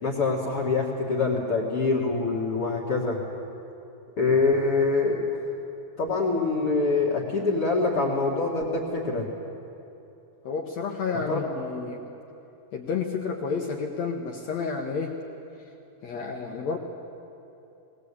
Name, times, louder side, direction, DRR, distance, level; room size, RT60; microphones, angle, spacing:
voice 1, 0.0-3.2 4.2-5.2 6.0-9.2 11.3-11.4, left 3 dB, 45° left, -4 dB, 2.5 m, -25 dB
voice 2, 10.4-12.0 12.7-15.2 16.0-16.8, left 5 dB, 65° left, 1 dB, 1.9 m, -30 dB
20.0 x 19.5 x 8.4 m, 3.0 s
omnidirectional pair, 4.5 m